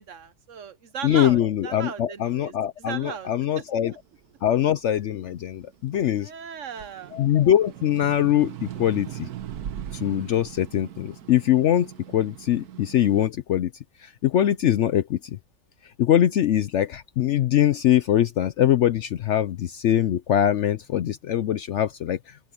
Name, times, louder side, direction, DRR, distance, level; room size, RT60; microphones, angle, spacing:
voice 1, 0.0-2.5 2.8-3.3 3.6-3.7 6.2-7.1, right 7 dB, 60° right, 1.1 m, -36 dB
voice 2, 1.0-3.9 4.4-6.3 7.1-9.3 9.9-11.9 12.1-13.7 14.0-15.4 16.0-22.2, left 11 dB, 65° left, 0.8 m, -22 dB
sound 1, 3.7-6.2 6.6-13.3, right 11 dB, 85° right, 1.4 m, -40 dB
open air
omnidirectional pair, 1.6 m